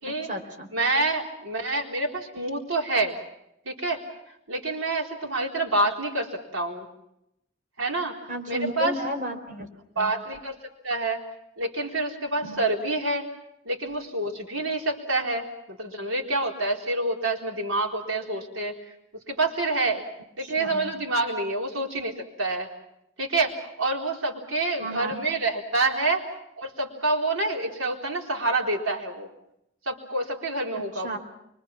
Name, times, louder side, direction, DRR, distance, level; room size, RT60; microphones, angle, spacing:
voice 1, 0.1-0.7 8.3-9.7 10.0-10.1 12.4-12.6 20.4-20.9 24.8-25.2 30.7-31.2, equal, 45° right, 3 dB, 4.3 m, -33 dB
voice 2, 0.7-3.2 3.7-4.0 4.5-6.9 7.8-8.2 8.5-9.0 10.0-10.6 10.8-11.2 11.6-13.2 13.7-18.7 19.3-20.0 20.4-22.7 23.2-26.2 26.6-29.3 29.9-31.2, right 2 dB, 85° right, 1 dB, 4.1 m, -27 dB
29.5 x 24.0 x 6.0 m, 0.79 s
head